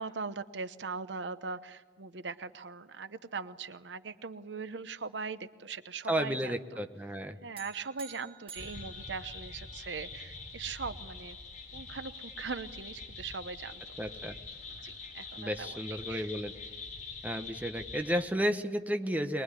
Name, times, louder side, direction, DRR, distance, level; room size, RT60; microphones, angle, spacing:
voice 1, 0.0-6.8 7.4-11.4 11.7-13.8 14.8-16.4 17.5-17.6, right 4 dB, 80° right, 12 dB, 0.9 m, -40 dB
voice 2, 6.1-7.4 14.0-14.3 15.4-16.5 17.2-19.4, equal, 10° right, 6 dB, 1.2 m, -32 dB
sound 1, 7.6-10.0, right 7 dB, 35° right, 1.5 m, -51 dB
sound 2, 8.5-18.2, left 4 dB, 45° left, 4.6 m, -45 dB
23.0 x 21.5 x 9.9 m, 1.4 s
head